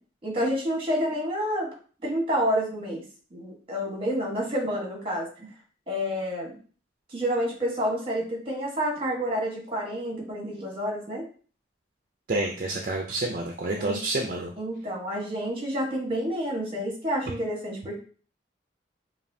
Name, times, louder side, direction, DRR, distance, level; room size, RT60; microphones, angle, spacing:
voice 1, 0.2-1.7 2.0-3.0 3.3-5.5 5.9-6.6 7.1-11.2 13.8-14.0 14.6-18.0, equal, 30° right, -1 dB, 1.3 m, -29 dB
voice 2, 12.3-14.5, right 2 dB, 45° right, 1 dB, 0.5 m, -28 dB
5.3 x 2.5 x 2.7 m, 0.40 s
head